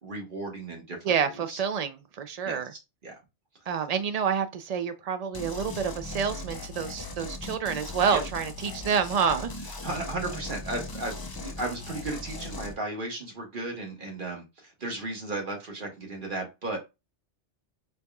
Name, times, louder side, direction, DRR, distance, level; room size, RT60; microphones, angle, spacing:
voice 1, 0.0-1.6 2.4-3.1 8.1-8.2 9.6-16.8, right 2 dB, 50° right, 1.2 m, -35 dB
voice 2, 1.1-2.7 3.7-9.5, right 6 dB, 65° right, 0.3 m, -28 dB
sound 1, 5.3-12.7, left 2 dB, 40° left, 0.3 m, -38 dB
4.0 x 3.4 x 2.2 m
omnidirectional pair, 1.2 m